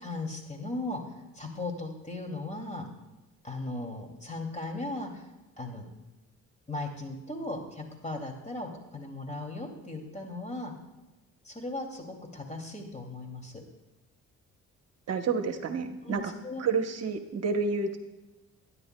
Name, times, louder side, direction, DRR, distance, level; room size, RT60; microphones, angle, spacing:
voice 1, 0.0-2.9 3.4-5.3 5.6-5.9 6.7-10.7 11.4-13.6 16.0-16.6, left 2 dB, 25° left, 3 dB, 2.5 m, -37 dB
voice 2, 15.1-16.2 16.6-18.0, right 5 dB, 55° right, 6 dB, 1.0 m, -29 dB
22.0 x 9.9 x 2.2 m, 1.1 s
cardioid pair, 90°, 30 cm